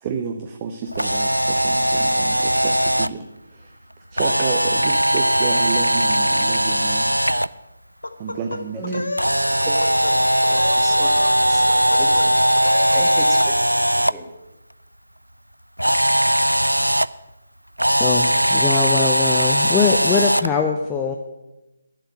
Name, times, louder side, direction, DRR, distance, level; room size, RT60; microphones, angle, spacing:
voice 1, 0.0-3.3 3.5-3.7 4.1-7.1 8.2-8.9, right 6 dB, 25° right, 6 dB, 0.7 m, -30 dB
Camera, 0.9-3.1 4.2-7.5 9.2-14.1 15.8-17.1 17.8-20.5, equal, 85° right, 0.4 m, -19 dB
sound 1, 8.0-9.3 9.6-10.1 10.4-11.4 11.7-12.3 12.6-13.0, left 2 dB, 70° left, 1.0 m, -30 dB
voice 2, 10.0-11.6 11.9-12.3 12.9-14.3, right 2 dB, 5° right, 0 dB, 1.6 m, -34 dB
voice 3, 18.0-21.2, left 6 dB, 10° left, 2 dB, 0.6 m, -22 dB
10.5 x 7.6 x 8.4 m, 1.0 s
figure-of-eight pair, 150°, 0 cm